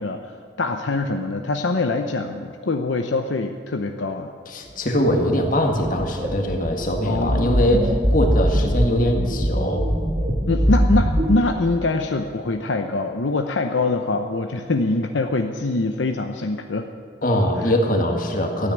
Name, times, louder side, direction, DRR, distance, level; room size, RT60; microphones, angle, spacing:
voice 1, 0.0-4.3 7.0-7.7 10.5-16.9 17.6-17.7, left 2 dB, 75° left, 5 dB, 0.7 m, -24 dB
voice 2, 4.5-9.9 17.2-18.7, equal, 45° left, 3 dB, 1.9 m, -22 dB
sound 1, 5.8-11.3, equal, 30° right, 1.7 m, -22 dB
13.5 x 9.5 x 9.2 m, 2.3 s
head